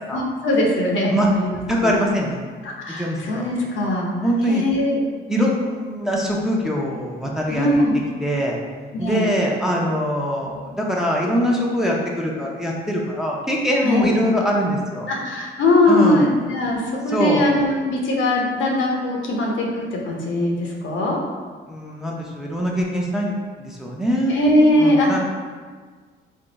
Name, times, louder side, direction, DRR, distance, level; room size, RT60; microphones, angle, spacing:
voice 1, 0.1-1.9 2.6-4.1 4.5-5.0 7.5-7.9 8.9-9.3 13.8-14.1 15.1-21.2 24.3-25.1, left 1 dB, 75° left, -1 dB, 0.7 m, -20 dB
voice 2, 1.7-2.4 3.0-3.4 4.2-4.6 5.3-7.8 8.2-8.6 9.0-15.1 15.9-16.3 17.1-17.4 21.7-24.4 24.8-25.2, equal, ahead, -3 dB, 0.6 m, -22 dB
3.4 x 2.1 x 3.9 m, 1.5 s
cardioid pair, 90°, 20 cm